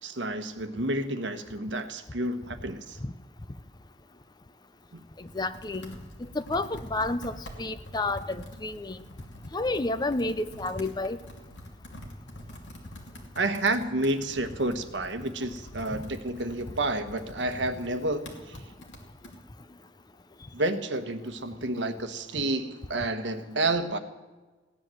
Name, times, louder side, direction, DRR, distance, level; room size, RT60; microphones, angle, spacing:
voice 1, 0.0-3.0 4.9-5.0 13.3-18.6 20.5-24.0, right 2 dB, 70° right, 9 dB, 1.2 m, -30 dB
Computer keyboard, 4.8-19.4, equal, 75° left, 2.8 m, -46 dB
voice 2, 5.2-5.9 6.2-9.0 9.5-11.2 15.9-16.0, left 2 dB, 20° left, 13 dB, 0.5 m, -30 dB
16.5 x 10.5 x 7.7 m, 1.3 s
head